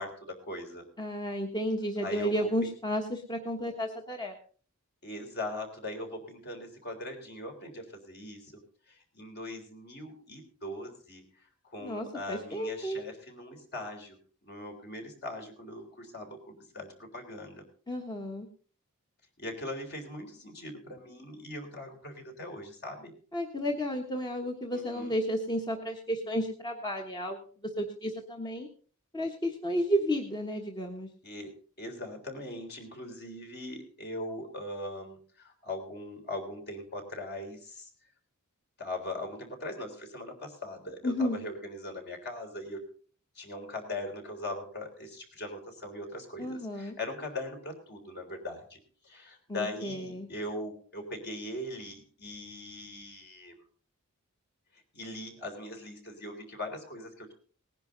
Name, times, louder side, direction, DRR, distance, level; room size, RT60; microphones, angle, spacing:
voice 1, 0.0-0.8 2.0-2.5 5.0-8.5 8.9-11.2 11.6-14.2 14.4-17.6 19.4-23.1 24.7-25.1 31.2-37.9 38.8-42.8 43.4-48.8 49.0-53.5 54.9-57.3, left 1 dB, 50° left, 3 dB, 3.6 m, -40 dB
voice 2, 1.0-4.4 11.8-13.0 17.9-18.5 23.3-27.4 27.8-28.7 29.1-31.1 41.0-41.4 46.4-47.0 49.5-50.3, equal, 20° left, 3 dB, 1.2 m, -32 dB
19.0 x 10.5 x 3.9 m, 0.43 s
head